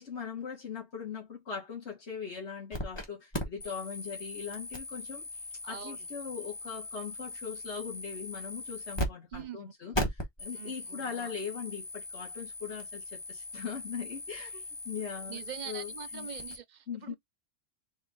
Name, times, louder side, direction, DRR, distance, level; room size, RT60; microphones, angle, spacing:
voice 1, 0.0-5.3 5.7-15.4 15.6-16.3 16.9-17.1, left 6 dB, 60° left, 2.3 m, -40 dB
sound 1, 2.7-3.1 3.3-9.1 9.3-9.4 9.9-16.6, left 1 dB, 20° left, 1.2 m, -39 dB
voice 2, 5.6-6.1 9.3-10.0 10.5-11.3 15.3-17.1, right 9 dB, 50° right, 0.6 m, -44 dB
4.3 x 2.8 x 3.8 m
omnidirectional pair, 1.3 m